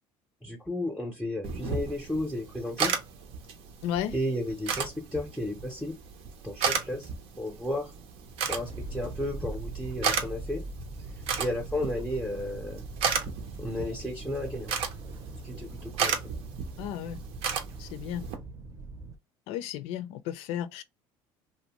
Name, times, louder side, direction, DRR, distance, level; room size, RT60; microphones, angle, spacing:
voice 1, 0.4-2.9 4.1-5.9 6.4-7.1 7.4-8.0 8.5-10.6 11.4-12.8 13.6-14.7 15.4-16.2, left 1 dB, 5° left, 0.7 m, -33 dB
sound 1, 1.4-18.4, right 6 dB, 65° right, 0.7 m, -34 dB
voice 2, 3.8-4.1 16.8-17.2 17.8-18.2 19.5-20.8, left 10 dB, 75° left, 0.4 m, -33 dB
sound 2, 8.5-19.2, right 3 dB, 30° right, 0.7 m, -41 dB
2.6 x 2.2 x 3.0 m
cardioid pair, 120°, 11 cm